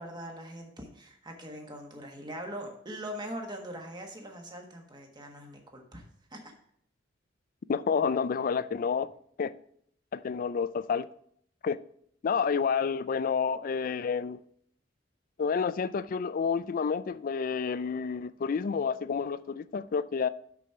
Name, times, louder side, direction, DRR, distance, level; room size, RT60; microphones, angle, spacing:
voice 1, 0.0-6.0 6.3-6.5, equal, 25° right, 1.4 m, -42 dB
voice 2, 7.7-9.1 9.4-9.5 10.1-11.1 11.6-11.8 12.2-14.4 15.4-20.3, left 6 dB, 45° left, 0.3 m, -29 dB
6.2 x 6.0 x 5.8 m
head